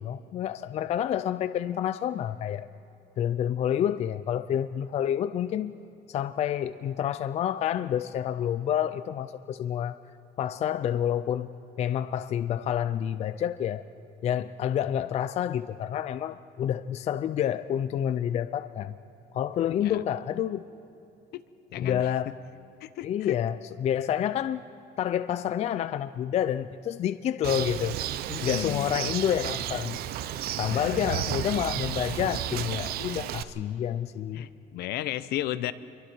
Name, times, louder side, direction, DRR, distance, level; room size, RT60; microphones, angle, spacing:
voice 1, 0.0-2.7 3.2-5.8 6.1-10.0 10.4-11.5 11.8-13.8 14.2-18.9 19.3-20.6 21.8-22.4 23.0-24.6 25.0-28.0 28.4-30.0 30.6-34.5, left 10 dB, 35° left, 13 dB, 0.4 m, -28 dB
voice 2, 21.7-22.1 22.8-23.4 28.3-28.9 30.7-31.2 34.3-35.7, left 14 dB, 65° left, 15 dB, 0.7 m, -34 dB
Bird, 27.4-33.4, right 11 dB, 60° right, 0.7 m, -32 dB
27.5 x 23.0 x 4.6 m, 2.9 s
cardioid pair, 155°, 18 cm